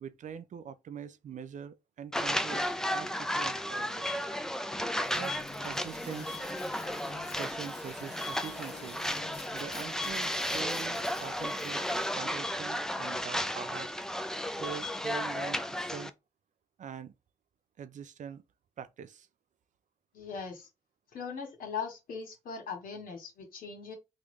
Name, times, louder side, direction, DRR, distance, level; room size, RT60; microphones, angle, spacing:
voice 1, 0.0-4.1 5.1-5.4 5.6-6.4 7.4-9.0 9.5-11.9 12.1-13.9 14.5-16.1 16.8-17.1 17.8-18.4 18.8-19.3, right 7 dB, 55° right, 0.5 m, -43 dB
sound 1, 2.1-16.1, equal, 5° left, 0.6 m, -34 dB
sound 2, 5.0-12.2, left 4 dB, 40° left, 1.2 m, -48 dB
voice 2, 20.1-20.7 21.1-23.9, left 6 dB, 70° left, 1.6 m, -40 dB
3.8 x 2.4 x 3.2 m
hypercardioid pair, 40°, 15 cm